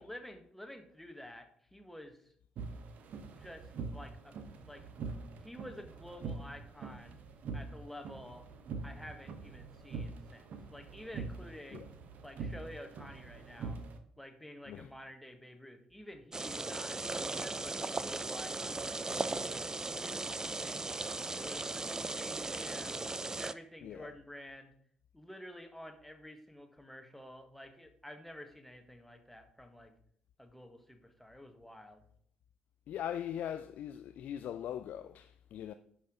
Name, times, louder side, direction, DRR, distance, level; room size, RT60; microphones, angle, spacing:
voice 1, 0.0-2.3 3.3-4.4 4.6-4.8 5.4-7.2 7.5-8.4 8.8-11.8 12.2-13.8 14.2-17.0 17.4-20.9 21.3-23.0 23.4-24.7 25.1-29.9 30.4-32.0, left 1 dB, 5° left, 1.6 m, -50 dB
sound 1, 2.6-14.0, right 4 dB, 55° right, 1.0 m, -44 dB
sound 2, 16.3-23.5, right 3 dB, 20° right, 0.5 m, -37 dB
voice 2, 32.9-35.7, left 10 dB, 55° left, 0.4 m, -40 dB
10.0 x 5.8 x 3.8 m
figure-of-eight pair, 45°, 3 cm